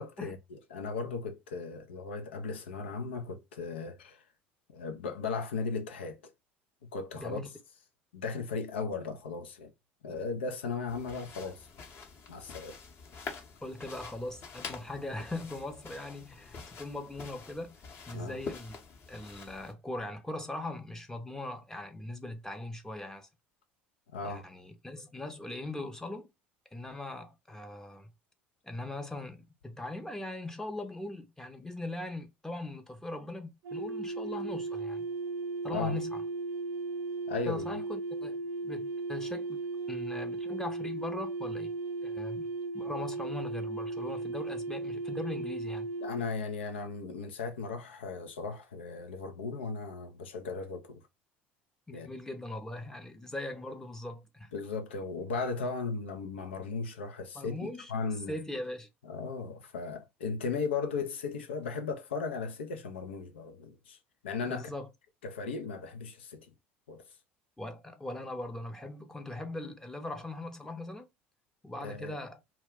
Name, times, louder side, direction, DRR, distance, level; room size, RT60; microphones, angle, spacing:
voice 1, 0.0-4.2 4.7-6.2 6.8-7.4 8.1-9.7 10.0-11.7 12.3-12.8 18.1-18.4 24.1-24.4 35.7-36.0 37.3-37.7 46.0-51.0 51.9-52.1 54.5-58.3 59.0-64.0 64.2-64.7 65.2-66.5 66.9-67.0 71.8-72.2, left 4 dB, 75° left, 0.5 m, -36 dB
voice 2, 7.1-7.5 13.6-17.8 18.1-18.8 19.1-23.3 24.2-26.3 26.7-28.1 28.6-35.1 35.6-36.2 37.5-38.4 38.6-39.6 39.9-41.7 42.0-45.9 51.9-54.5 57.3-57.9 58.3-58.9 64.5-64.9 67.6-71.0 71.6-72.4, left 2 dB, 10° left, 0.6 m, -40 dB
sound 1, 10.9-19.7, left 5 dB, 40° left, 0.8 m, -46 dB
sound 2, 33.6-46.4, right 3 dB, 55° right, 0.5 m, -36 dB
2.3 x 2.1 x 3.5 m
figure-of-eight pair, 65°, 6 cm